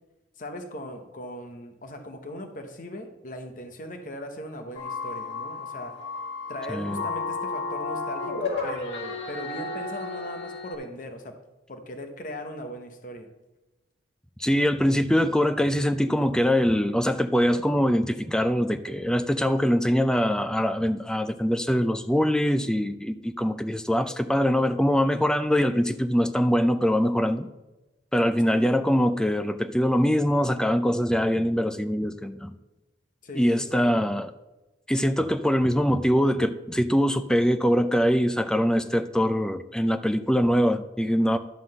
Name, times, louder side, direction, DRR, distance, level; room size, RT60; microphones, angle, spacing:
voice 1, 0.4-6.0 6.5-11.4 11.7-13.3 28.5-28.8 33.2-33.9, equal, 45° left, 6 dB, 0.9 m, -39 dB
sound 1, 4.8-10.8, left 3 dB, 90° left, 2.2 m, -33 dB
voice 2, 6.7-7.0 14.4-27.5 28.1-32.5 33.4-34.3 34.9-41.4, equal, 5° left, 9 dB, 0.4 m, -23 dB
11.5 x 3.8 x 7.6 m, 1.0 s
head